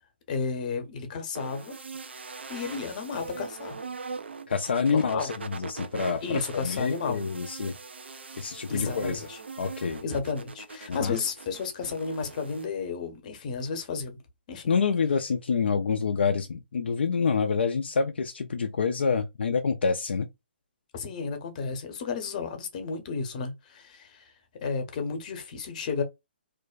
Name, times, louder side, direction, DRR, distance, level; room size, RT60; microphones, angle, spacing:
voice 1, 0.3-1.7 2.5-3.8 4.8-5.3 6.2-7.2 8.7-9.4 10.0-14.2 14.5-14.7 20.9-24.3 24.6-26.0, left 5 dB, 45° left, 0.8 m, -32 dB
sound 1, 1.3-12.7, right 4 dB, 80° right, 0.4 m, -41 dB
voice 2, 4.5-7.8 8.4-9.3 9.6-10.0 10.9-11.2 14.7-20.3, left 5 dB, 70° left, 0.4 m, -27 dB
2.5 x 2.1 x 2.3 m
figure-of-eight pair, 135°, 6 cm